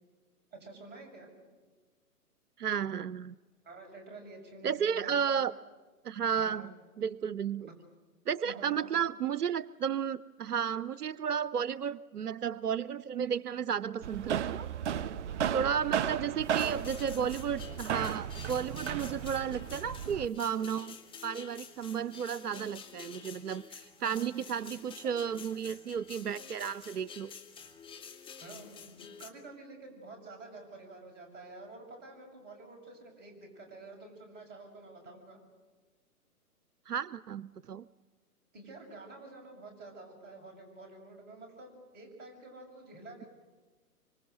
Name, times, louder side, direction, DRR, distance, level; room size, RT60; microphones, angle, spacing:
voice 1, 0.5-1.5 3.6-5.5 6.3-6.7 7.6-7.7 8.4-9.0 15.9-16.2 24.0-24.3 24.7-24.8 25.2-25.3 28.4-35.4 38.5-43.3, right 2 dB, 20° right, 2 dB, 6.7 m, -49 dB
voice 2, 2.6-3.3 4.6-5.5 6.0-6.7 7.0-7.7 8.3-14.7 15.5-21.0 21.2-27.3 36.9-37.9, right 7 dB, 85° right, 19 dB, 0.7 m, -33 dB
sound 1, 14.0-20.3, right 9 dB, 50° right, 0.8 m, -35 dB
sound 2, 16.4-29.3, left 7 dB, 10° left, 1.7 m, -49 dB
25.5 x 25.5 x 7.9 m, 1.4 s
hypercardioid pair, 130°, 45 cm